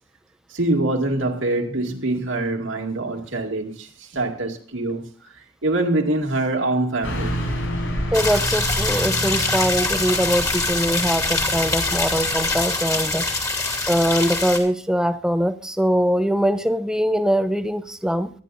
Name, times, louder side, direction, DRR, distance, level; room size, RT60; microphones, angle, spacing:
voice 1, 0.5-7.4, right 2 dB, 80° right, 2.4 m, -24 dB
Car passing by / Truck, 7.0-12.6, equal, 80° left, 7.4 m, -29 dB
sound 1, 8.1-14.6, left 3 dB, 15° left, 2.7 m, -24 dB
voice 2, 8.1-13.3 13.9-18.3, equal, 5° right, 0.8 m, -22 dB
24.5 x 10.5 x 2.7 m
head